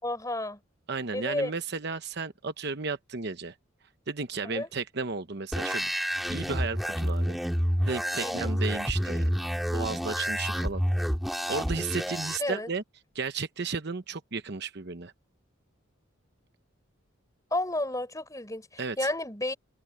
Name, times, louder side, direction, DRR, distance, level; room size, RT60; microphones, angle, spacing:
voice 1, 0.0-0.6 1.1-1.5 4.4-4.7 8.2-8.5 12.4-12.7 17.5-19.5, left 1 dB, 15° left, 6.8 m, -31 dB
voice 2, 0.9-3.5 4.1-5.9 6.3-7.4 7.9-9.3 9.7-10.8 11.5-12.8 13.1-15.1 18.8-19.1, right 4 dB, 55° right, 0.9 m, -34 dB
sound 1, 5.5-12.4, equal, ahead, 3.2 m, -29 dB
head